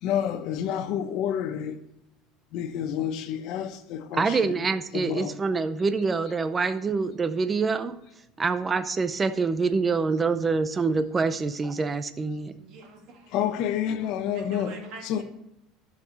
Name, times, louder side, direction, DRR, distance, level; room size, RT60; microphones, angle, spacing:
voice 1, 0.0-1.8 2.5-4.5 4.9-5.3 13.3-14.7 15.0-15.2, left 9 dB, 50° left, 1.0 m, -29 dB
voice 2, 4.1-8.0 8.4-12.5, right 4 dB, 15° right, 0.6 m, -26 dB
voice 3, 12.6-13.4 14.0-15.2, right 3 dB, 45° right, 2.2 m, -44 dB
11.5 x 6.7 x 4.1 m
cardioid pair, 165°, 0 cm